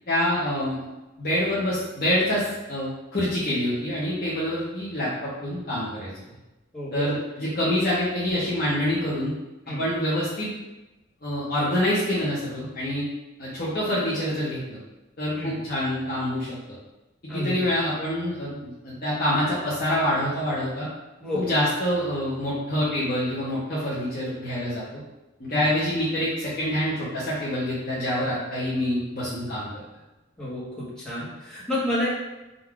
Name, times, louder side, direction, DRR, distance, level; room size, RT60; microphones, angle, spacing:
voice 1, 0.1-0.8 1.2-6.1 6.9-9.3 9.8-10.5 11.2-13.0 13.4-14.8 15.2-16.5 17.3-20.9 21.3-25.0 25.4-29.8, left 1 dB, 50° left, -9 dB, 1.0 m, -26 dB
voice 2, 6.7-7.2 9.7-9.8 15.4-15.6 17.3-17.6 18.0-18.1 21.2-21.5 25.5-25.7 30.4-32.1, left 1 dB, 5° left, -10 dB, 1.2 m, -30 dB
3.8 x 2.7 x 4.7 m, 1.0 s
head